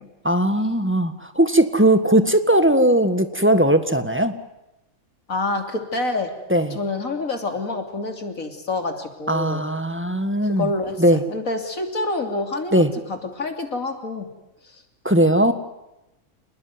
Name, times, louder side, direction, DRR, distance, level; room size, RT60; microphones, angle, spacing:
voice 1, 0.2-4.4 6.5-6.8 9.3-10.7 11.0-11.2 12.7-12.9 15.0-15.5, right 1 dB, 10° right, 9 dB, 1.6 m, -18 dB
voice 2, 5.3-6.3 6.7-9.7 10.4-11.0 11.3-12.8 13.1-14.3, left 2 dB, 70° left, 5 dB, 3.5 m, -27 dB
27.0 x 20.0 x 9.7 m, 0.95 s
omnidirectional pair, 1.5 m